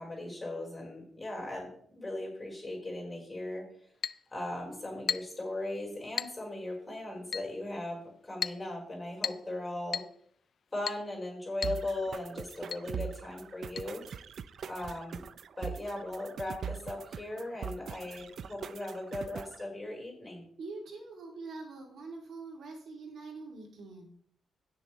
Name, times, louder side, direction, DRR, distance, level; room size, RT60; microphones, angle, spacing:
voice 1, 0.0-3.6 4.3-10.0 10.7-14.0 14.7-15.2 15.6-20.4, left 1 dB, 20° left, -2 dB, 4.4 m, -38 dB
Chink clink, 4.0-4.2 5.1-5.4 6.2-6.4 7.3-7.5 8.4-8.6 9.2-9.5 9.9-10.1 10.9-11.1 11.6-11.8 12.1-12.2 12.7-12.9 13.8-13.9, left 7 dB, 55° left, 0.3 m, -35 dB
sound 1, 11.6-19.6, right 7 dB, 60° right, 0.4 m, -42 dB
voice 2, 20.6-24.1, right 3 dB, 75° right, 1 dB, 2.6 m, -44 dB
17.0 x 6.5 x 3.1 m, 0.63 s
wide cardioid pair, 140°, 0 cm